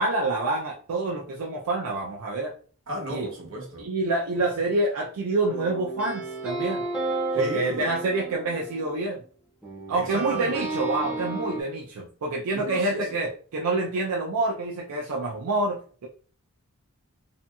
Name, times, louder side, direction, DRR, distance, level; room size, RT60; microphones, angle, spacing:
voice 1, 0.0-2.5 3.1-3.3 3.8-6.8 7.3-9.2 9.9-16.1, right 2 dB, 80° right, 0.4 m, -27 dB
voice 2, 2.9-3.9 7.3-7.9 9.9-10.6 12.5-13.1, right 1 dB, 60° right, 0.9 m, -34 dB
sound 1, 5.5-9.2 9.6-11.6, right 2 dB, 5° right, 0.5 m, -32 dB
2.6 x 2.6 x 2.3 m
head